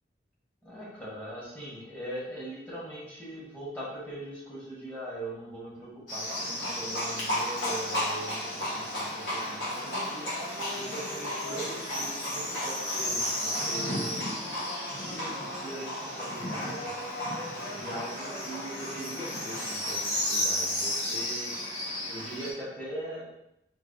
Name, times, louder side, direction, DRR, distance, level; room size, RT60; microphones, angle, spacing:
voice 1, 0.6-10.3 10.8-14.2 15.0-17.0 17.6-21.5 22.1-23.2, right 1 dB, 10° left, -8 dB, 1.4 m, -41 dB
Livestock farm animals working animals, 6.1-22.5, left 1 dB, 80° left, 1.4 m, -33 dB
4.6 x 2.8 x 2.7 m, 0.82 s
head